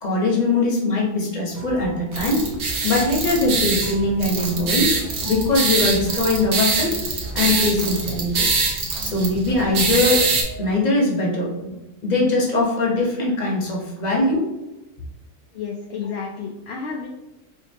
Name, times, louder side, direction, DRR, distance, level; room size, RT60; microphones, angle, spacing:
voice 1, 0.0-2.4 2.8-5.0 5.2-7.0 7.3-8.6 9.0-10.3 10.6-11.8 12.0-14.5, left 2 dB, 35° left, -3 dB, 1.0 m, -21 dB
sound 1, 1.5-11.1, right 3 dB, 25° right, 0.3 m, -37 dB
sound 2, 2.1-10.4, right 4 dB, 65° right, 1.1 m, -24 dB
voice 2, 15.5-17.1, left 5 dB, 65° left, 0 dB, 0.7 m, -31 dB
4.7 x 2.6 x 2.8 m, 1.0 s
omnidirectional pair, 1.3 m